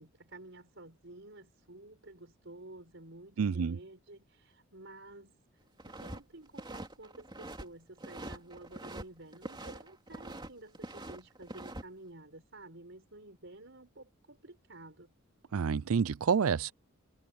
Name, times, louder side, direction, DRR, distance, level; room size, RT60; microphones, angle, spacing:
voice 1, 0.0-5.4 5.9-15.1, right 2 dB, 60° right, 5.5 m, -51 dB
voice 2, 3.4-3.8 15.5-16.7, right 6 dB, 90° right, 0.5 m, -28 dB
sound 1, 5.8-6.2 6.5-7.7 8.0-9.0 9.3-10.5 10.7-11.8, right 1 dB, 20° right, 3.2 m, -44 dB
head